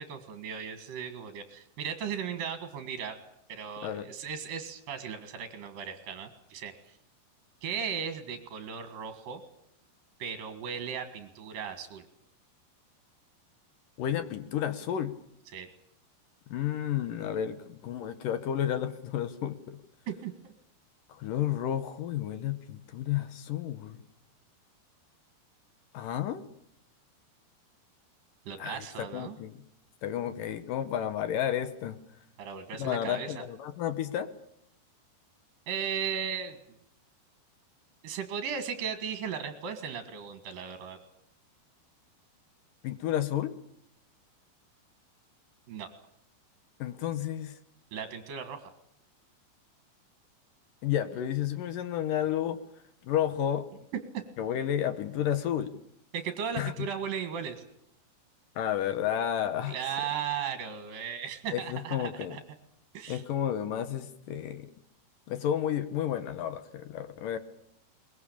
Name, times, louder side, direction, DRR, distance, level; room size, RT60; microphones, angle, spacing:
voice 1, 0.0-3.2 3.5-6.7 7.6-9.4 10.2-12.0 15.5-15.7 20.1-20.5 28.5-29.4 32.4-33.4 35.7-36.6 38.0-41.0 45.7-45.9 47.9-48.7 56.1-57.6 59.7-62.4 62.9-63.2, right 7 dB, 60° right, 9 dB, 3.1 m, -36 dB
voice 2, 14.0-15.2 16.5-19.8 21.1-24.0 25.9-26.4 28.6-28.9 29.1-29.6 30.0-32.0 32.8-34.3 42.8-43.5 46.8-47.6 50.8-52.6 53.0-53.7 54.4-55.8 56.6-56.9 58.6-59.8 61.5-62.4 63.1-64.7 65.3-67.4, left 10 dB, 70° left, 12 dB, 2.3 m, -31 dB
22.5 x 21.5 x 8.6 m, 0.74 s
omnidirectional pair, 5.0 m